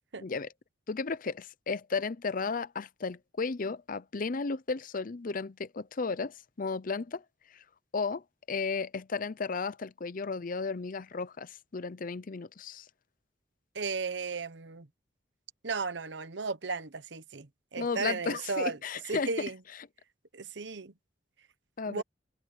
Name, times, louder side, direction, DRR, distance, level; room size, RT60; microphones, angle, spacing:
voice 1, 0.9-7.2 7.5-7.6 7.9-8.2 8.5-12.8 17.8-19.5 21.8-22.0, left 4 dB, 50° left, 0.6 m, -34 dB
voice 2, 13.7-14.9 15.6-17.5 17.7-18.8 19.1-19.6 20.3-20.9 21.9-22.0, right 4 dB, 70° right, 1.0 m, -35 dB
head